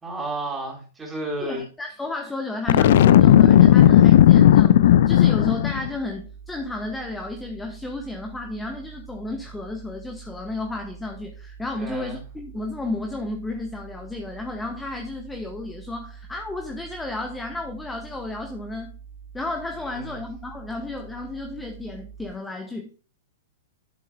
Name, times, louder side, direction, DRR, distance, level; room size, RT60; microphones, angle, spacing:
voice 1, 0.0-1.6 11.8-12.1 19.9-20.2, right 2 dB, 10° right, 0 dB, 3.5 m, -32 dB
voice 2, 1.4-18.9 19.3-23.1, left 2 dB, 10° left, 3 dB, 1.0 m, -33 dB
Boom, 2.7-5.9, left 11 dB, 55° left, 0.4 m, -14 dB
sound 1, 2.8-22.3, right 7 dB, 25° left, 1.9 m, -44 dB
12.0 x 7.5 x 2.3 m, 0.38 s
figure-of-eight pair, 105°, 0 cm